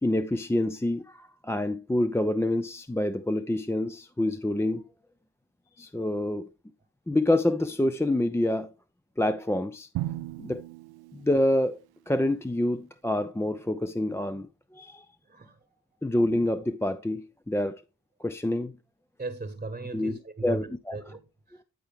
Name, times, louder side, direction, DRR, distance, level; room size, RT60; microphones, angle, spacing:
voice 1, 0.0-4.8 5.8-6.5 7.1-8.7 9.2-9.9 10.4-10.6 11.1-11.8 12.1-15.1 16.0-17.8 18.2-18.8 19.9-20.1 20.4-21.0, left 1 dB, 5° left, 0.5 m, -27 dB
Drum, 9.9-12.0, right 16 dB, 75° right, 0.5 m, -37 dB
voice 2, 15.3-15.6 19.2-21.6, right 3 dB, 20° right, 1.2 m, -38 dB
12.0 x 4.5 x 3.5 m
supercardioid pair, 45°, 38 cm